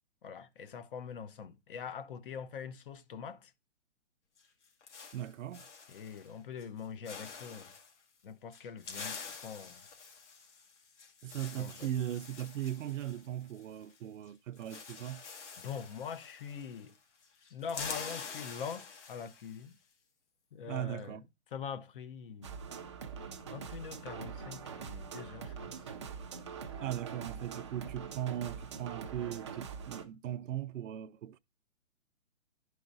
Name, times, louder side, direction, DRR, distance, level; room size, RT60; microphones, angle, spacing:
voice 1, 0.2-3.5 5.9-7.7 8.2-9.2 9.4-9.8 11.6-11.9 15.6-16.9 17.5-19.8 20.5-21.2 21.5-22.5 23.5-25.7, left 7 dB, 45° left, 0.8 m, -43 dB
sound 1, 4.4-6.3 6.6-6.8 7.0-7.9 8.5-14.0 14.2-14.3 14.6-17.0 17.2-19.6, left 5 dB, 65° left, 2.3 m, -47 dB
voice 2, 5.1-5.7 11.2-15.2 20.7-21.2 26.8-31.4, right 11 dB, 75° right, 0.6 m, -38 dB
sound 2, 22.4-30.1, right 6 dB, 25° right, 0.4 m, -44 dB
12.0 x 4.8 x 2.6 m
hypercardioid pair, 150°, 38 cm